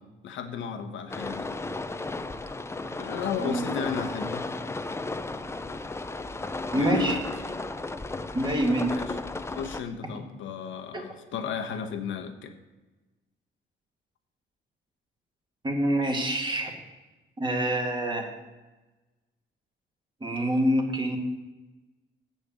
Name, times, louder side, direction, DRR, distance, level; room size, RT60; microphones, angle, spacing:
voice 1, 0.2-1.6 2.9-4.5 6.7-7.2 9.0-9.1 9.5-12.5, left 6 dB, 75° left, 6 dB, 1.1 m, -34 dB
sound 1, 1.1-9.8, left 2 dB, 15° left, 0.5 m, -34 dB
voice 2, 6.7-7.2 8.3-8.9 15.6-16.7 17.4-18.3 20.2-21.2, right 1 dB, 25° right, 2 dB, 2.0 m, -26 dB
7.7 x 6.4 x 7.3 m, 1.1 s
cardioid pair, 90°, 20 cm